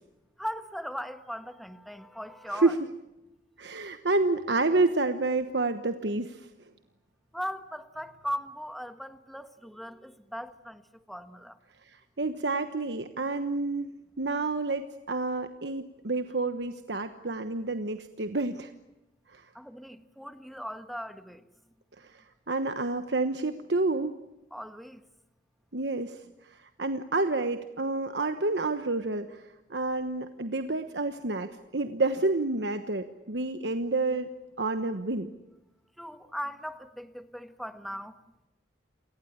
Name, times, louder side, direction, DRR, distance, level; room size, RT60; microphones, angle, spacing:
voice 1, 0.4-2.8 7.3-10.8 11.1-11.6 19.5-21.4 24.5-25.0 36.0-38.1, equal, ahead, 1.4 m, -38 dB
voice 2, 3.6-6.5 12.2-13.9 14.2-18.7 19.3-19.4 22.0-22.1 22.5-24.1 25.7-26.2 26.8-29.4 29.7-34.3 34.6-35.3, right 3 dB, 70° right, 1.2 m, -29 dB
28.5 x 18.5 x 10.0 m
head